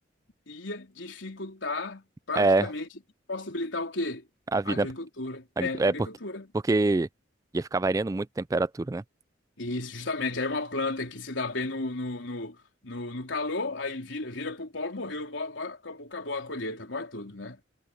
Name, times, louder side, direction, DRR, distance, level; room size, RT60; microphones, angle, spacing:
voice 1, 0.5-2.9 3.3-4.3 4.7-6.5 9.6-12.6 12.8-17.6, left 2 dB, 85° left, 3.8 m, -34 dB
voice 2, 2.4-2.7 4.5-4.9 5.6-5.9 6.7-7.1 7.5-9.0, right 2 dB, 20° right, 0.3 m, -25 dB
head